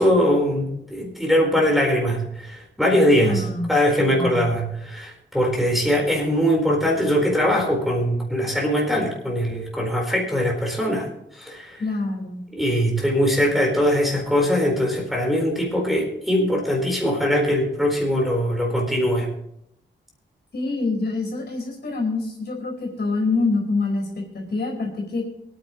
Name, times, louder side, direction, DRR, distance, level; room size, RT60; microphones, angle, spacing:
voice 1, 0.0-11.1 11.4-11.8 12.6-19.3, equal, ahead, -2 dB, 4.3 m, -21 dB
voice 2, 3.2-3.7 4.0-4.6 11.8-12.4 20.5-25.2, left 3 dB, 55° left, 1 dB, 4.7 m, -26 dB
23.5 x 9.5 x 3.1 m, 0.77 s
wide cardioid pair, 105°, 20 cm